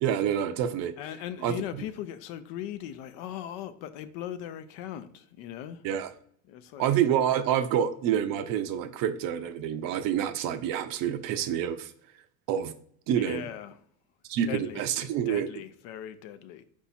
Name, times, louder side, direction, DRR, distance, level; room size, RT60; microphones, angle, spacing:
voice 1, 0.0-0.9 1.4-1.6 5.8-6.1 6.8-11.9 12.5-12.7 13.1-13.4 14.3-15.5, right 9 dB, 50° right, 0.6 m, -27 dB
voice 2, 1.0-5.8 6.5-6.8 13.2-13.8 14.4-14.8 15.3-16.6, left 11 dB, 65° left, 0.6 m, -39 dB
4.7 x 2.7 x 4.1 m
supercardioid pair, 105°, 43 cm